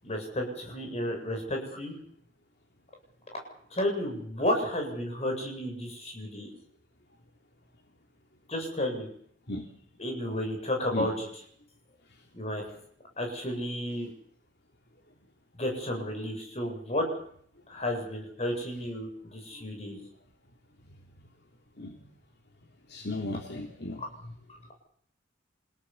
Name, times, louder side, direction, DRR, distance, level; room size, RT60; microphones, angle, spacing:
voice 1, 0.0-1.9 3.7-6.5 8.5-9.1 10.0-11.3 12.3-12.6 13.2-14.1 15.5-17.1 17.7-20.0 24.0-24.1, left 1 dB, 35° left, 2 dB, 7.9 m, -32 dB
voice 2, 22.9-24.3, left 2 dB, 60° left, 3 dB, 3.1 m, -36 dB
29.5 x 17.5 x 7.2 m, 0.63 s
head